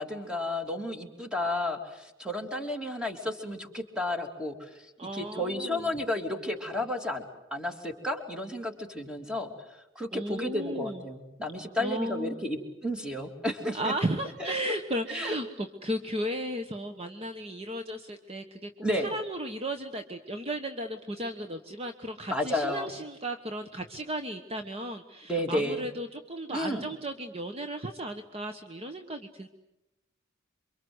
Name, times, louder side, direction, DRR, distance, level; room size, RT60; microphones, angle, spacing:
voice 1, 0.0-7.2 7.5-13.9 14.4-14.5 15.1-15.3 18.8-19.1 22.3-22.9 25.3-25.9 26.5-26.9, left 1 dB, 5° right, 4 dB, 3.1 m, -32 dB
voice 2, 5.0-5.9 10.1-11.0 11.8-12.4 13.7-18.7 18.9-29.5, right 1 dB, 30° right, 7 dB, 1.2 m, -35 dB
28.0 x 24.5 x 8.0 m, 0.95 s
head